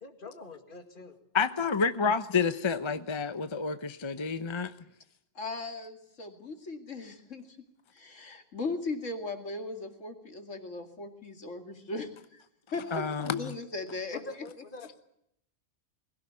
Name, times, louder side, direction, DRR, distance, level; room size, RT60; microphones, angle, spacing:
voice 1, 0.0-1.2 14.1-14.9, left 3 dB, 45° left, 2.4 m, -44 dB
voice 2, 1.3-4.7 12.9-13.5, left 5 dB, 25° left, 0.8 m, -29 dB
voice 3, 5.3-7.6 7.9-12.4 12.7-14.2, left 3 dB, 80° left, 2.7 m, -38 dB
20.5 x 17.0 x 9.8 m
omnidirectional pair, 1.3 m